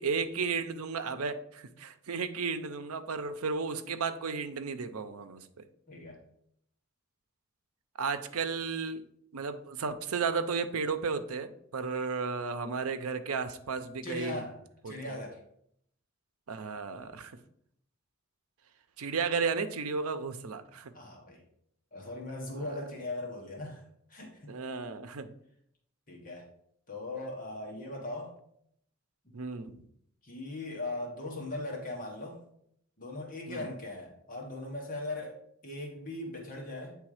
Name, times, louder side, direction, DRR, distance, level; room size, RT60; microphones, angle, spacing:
voice 1, 0.0-5.6 8.0-9.0 9.3-14.4 14.8-15.2 16.5-17.3 19.0-20.9 22.5-22.7 24.5-25.4 29.3-29.8 33.5-33.7, right 5 dB, 90° right, 10 dB, 0.6 m, -34 dB
voice 2, 5.9-6.2 14.0-14.6 14.8-15.4 20.9-21.4 21.9-24.5 26.1-26.5 26.9-28.4 29.2-29.3 30.2-32.4 33.0-37.0, left 2 dB, 40° left, -1 dB, 1.4 m, -39 dB
8.7 x 3.4 x 4.9 m, 0.70 s
head